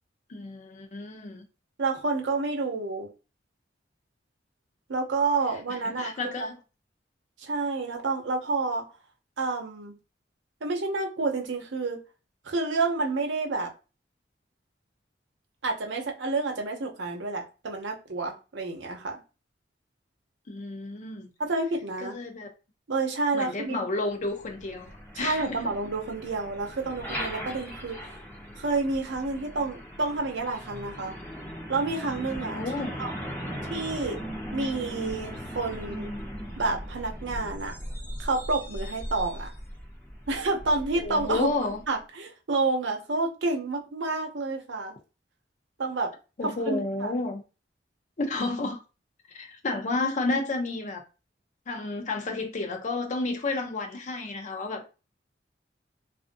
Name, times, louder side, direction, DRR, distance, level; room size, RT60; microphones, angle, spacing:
voice 1, 0.3-1.4 5.7-6.6 20.5-21.3 22.0-22.5 23.3-24.9 25.1-25.6 32.5-33.0 41.0-41.8 46.4-47.4 48.2-48.8 49.3-51.0 51.7-54.9, left 3 dB, 45° left, 0.5 m, -31 dB
voice 2, 1.8-3.1 4.9-6.5 7.4-8.8 9.4-9.9 10.6-12.0 12.4-13.7 15.6-19.2 21.4-22.1 22.9-23.8 25.2-28.0 28.6-31.1 31.7-32.6 33.0-33.3 33.7-34.2 34.5-36.1 36.6-37.8 38.2-39.5 40.3-41.5 41.9-44.9 45.8-46.1 46.7-47.1, right 3 dB, 85° right, 0.7 m, -29 dB
Truck, 24.2-41.9, equal, 10° left, 0.9 m, -38 dB
2.5 x 2.4 x 2.5 m
head